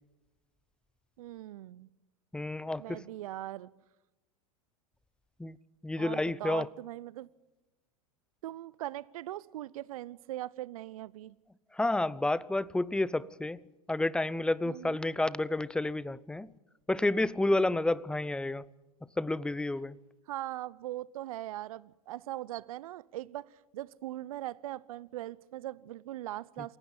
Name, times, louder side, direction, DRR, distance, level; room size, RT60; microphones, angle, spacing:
voice 1, 1.2-1.9 2.8-3.7 6.0-7.3 8.4-11.4 14.6-15.0 20.3-26.8, right 14 dB, 65° right, 0.8 m, -40 dB
voice 2, 2.3-3.0 5.4-5.6 5.8-6.7 11.8-13.6 13.9-16.5 16.9-18.6 19.2-20.0, left 2 dB, 5° left, 0.7 m, -30 dB
28.0 x 16.0 x 8.6 m
hypercardioid pair, 95°, 20 cm